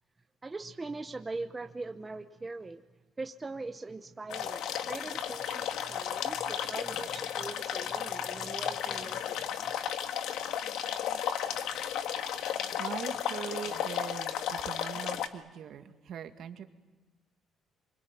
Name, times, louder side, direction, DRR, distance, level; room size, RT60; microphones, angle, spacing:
voice 1, 0.4-2.8 3.2-9.8, right 3 dB, 15° right, 7 dB, 0.8 m, -41 dB
sound 1, 4.3-15.3, left 9 dB, 75° left, 1.7 m, -34 dB
voice 2, 11.2-11.7 12.8-16.7, right 8 dB, 55° right, 7 dB, 2.0 m, -42 dB
26.0 x 24.0 x 9.1 m, 1.2 s
cardioid pair, 150°, 0 cm